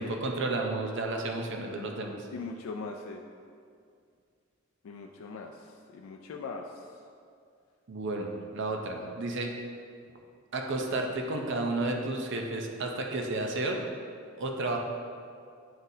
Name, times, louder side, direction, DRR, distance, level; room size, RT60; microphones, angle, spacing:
voice 1, 0.0-2.3 7.9-9.5 10.5-13.8 14.4-14.8, right 2 dB, 60° right, 2 dB, 0.6 m, -32 dB
voice 2, 2.3-3.2 4.8-6.9, left 4 dB, 85° left, 2 dB, 0.4 m, -40 dB
9.5 x 3.9 x 2.7 m, 2.3 s
head